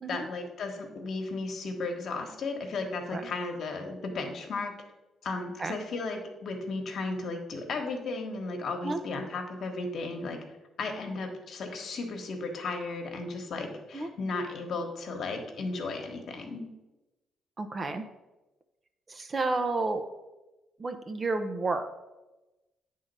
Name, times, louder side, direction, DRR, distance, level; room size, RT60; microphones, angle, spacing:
voice 1, 0.1-4.7 5.2-10.4 10.8-16.7, left 3 dB, 60° left, 3 dB, 1.3 m, -35 dB
voice 2, 17.6-18.1 19.1-20.0 20.8-22.0, right 3 dB, 30° right, 7 dB, 0.7 m, -31 dB
8.7 x 3.8 x 5.4 m, 1.0 s
cardioid pair, 90°, 0 cm